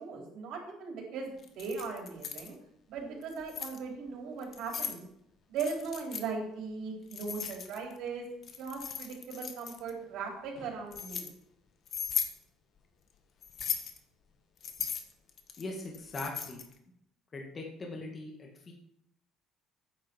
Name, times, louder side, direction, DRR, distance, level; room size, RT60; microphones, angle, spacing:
voice 1, 0.0-2.6 2.9-5.0 5.5-8.3 8.6-11.3, right 5 dB, 75° right, 1 dB, 4.0 m, -38 dB
Keys jangling, 1.4-2.5 3.2-3.8 4.4-5.0 5.6-6.3 7.1-8.0 8.4-9.9 10.5-11.3 11.9-12.4 13.4-14.0 14.6-16.7, left 7 dB, 40° left, 1.5 m, -37 dB
voice 2, 15.6-16.6 17.3-18.7, left 2 dB, 25° left, 0 dB, 2.1 m, -40 dB
14.0 x 9.9 x 4.7 m, 0.76 s
cardioid pair, 155°, 0 cm